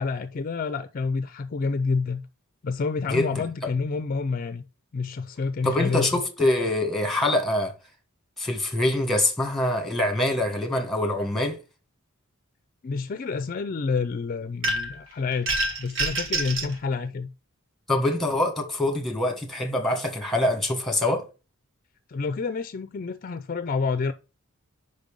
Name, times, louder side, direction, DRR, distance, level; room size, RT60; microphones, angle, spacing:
voice 1, 0.0-2.2 2.6-4.6 4.9-6.2 12.8-17.3 22.1-24.1, left 4 dB, 40° left, 0.4 m, -28 dB
voice 2, 5.6-7.7 8.4-11.6 17.9-21.2, left 1 dB, ahead, 1.3 m, -24 dB
sound 1, 14.6-15.0 15.5-16.7, right 2 dB, 60° right, 1.4 m, -27 dB
5.3 x 5.3 x 5.2 m
head